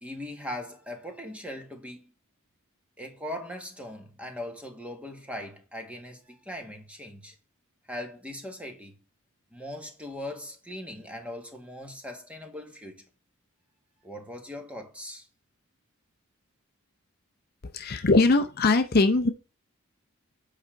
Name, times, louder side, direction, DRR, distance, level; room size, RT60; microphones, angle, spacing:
voice 1, 0.0-2.1 3.0-7.3 7.9-8.9 9.5-13.1 14.0-15.3, left 1 dB, 5° right, 1.4 m, -40 dB
voice 2, 17.7-19.3, left 3 dB, 45° left, 0.6 m, -21 dB
8.5 x 5.0 x 4.5 m
head